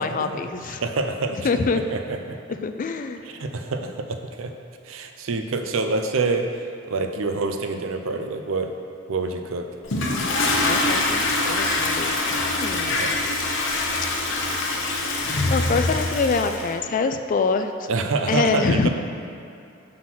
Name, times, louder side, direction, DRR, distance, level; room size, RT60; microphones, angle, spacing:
voice 1, 0.0-0.8 1.4-1.8 2.6-3.2 10.6-12.2 12.5-13.0 15.5-17.9 18.3-18.9, left 4 dB, 40° left, 8 dB, 0.3 m, -25 dB
voice 2, 0.7-2.4 3.3-4.5 4.8-6.5 6.9-8.7 9.1-9.7 12.9-13.1 17.9-18.9, right 3 dB, 80° right, 6 dB, 0.5 m, -26 dB
Toilet flush, 9.8-16.7, left 2 dB, 65° left, 0.8 m, -24 dB
5.8 x 3.8 x 6.0 m, 2.6 s
head